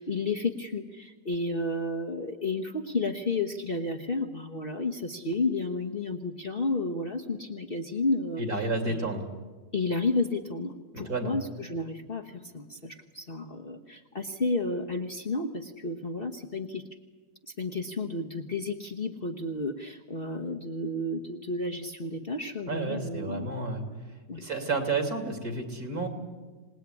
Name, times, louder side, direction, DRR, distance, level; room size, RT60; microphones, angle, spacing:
voice 1, 0.0-9.1 9.7-16.8 17.5-23.5 24.3-24.4, left 2 dB, 35° left, 1 dB, 1.1 m, -32 dB
voice 2, 8.4-9.3 10.9-11.4 22.7-23.8 24.4-26.1, right 3 dB, 55° right, 5 dB, 3.4 m, -31 dB
26.5 x 19.0 x 9.8 m, 1.4 s
omnidirectional pair, 1.9 m